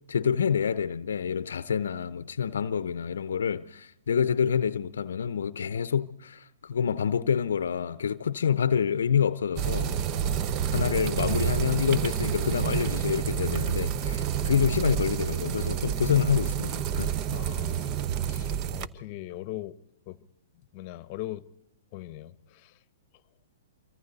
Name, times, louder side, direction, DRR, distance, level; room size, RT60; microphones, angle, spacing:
voice 1, 0.1-9.9 10.7-17.1, left 7 dB, 75° left, 0.6 m, -27 dB
sound 1, 9.6-18.9, right 9 dB, 35° right, 0.8 m, -29 dB
voice 2, 17.3-18.0 18.3-19.7 20.1-20.2 20.7-21.4 21.9-22.7, left 15 dB, 40° left, 0.9 m, -40 dB
26.5 x 24.0 x 4.1 m
hypercardioid pair, 125°, 0 cm